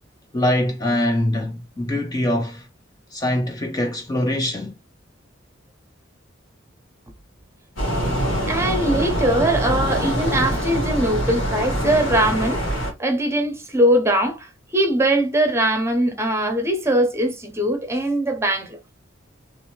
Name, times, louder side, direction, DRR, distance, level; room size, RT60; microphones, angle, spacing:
voice 1, 0.3-2.7 3.1-4.7, left 1 dB, 20° left, 0.4 m, -23 dB
sound 1, 7.8-12.9, equal, 80° left, 2.0 m, -24 dB
voice 2, 8.5-18.8, right 1 dB, 15° right, 0.7 m, -21 dB
3.0 x 2.7 x 3.0 m
head